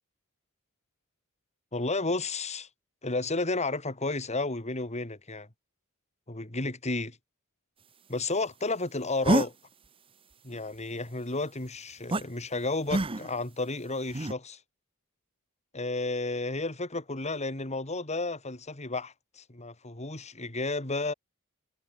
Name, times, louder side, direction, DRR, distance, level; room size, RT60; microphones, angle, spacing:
voice 1, 1.7-2.7 3.0-5.5 6.3-7.2 8.1-9.5 10.4-14.6 15.7-21.1, left 3 dB, 30° left, 3.1 m, -32 dB
sound 1, 9.2-9.5 12.1-12.2 12.9-13.4 14.1-14.3, right 2 dB, 25° right, 0.9 m, -26 dB
head